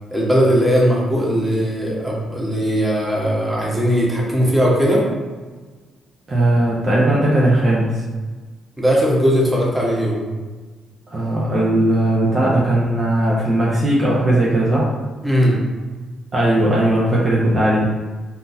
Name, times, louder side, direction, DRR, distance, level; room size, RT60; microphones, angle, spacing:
voice 1, 0.1-5.0 8.8-10.2 15.2-15.6, equal, 10° right, -4 dB, 1.4 m, -18 dB
voice 2, 6.3-8.0 11.1-14.9 16.3-17.9, right 1 dB, 45° right, -5 dB, 0.8 m, -17 dB
3.6 x 2.8 x 2.7 m, 1.4 s
hypercardioid pair, 50°, 0 cm